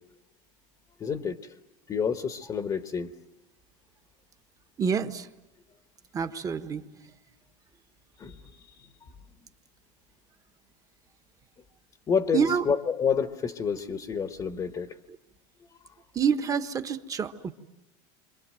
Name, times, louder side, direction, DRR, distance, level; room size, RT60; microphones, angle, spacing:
voice 1, 1.0-1.6 1.9-3.1 8.2-8.9 12.1-15.0, left 6 dB, 20° left, 8 dB, 1.2 m, -29 dB
voice 2, 4.8-5.3 6.1-6.8 12.3-12.7 16.1-17.5, right 7 dB, 20° right, 9 dB, 1.3 m, -27 dB
28.5 x 26.5 x 7.7 m, 0.95 s
supercardioid pair, 145°, 17 cm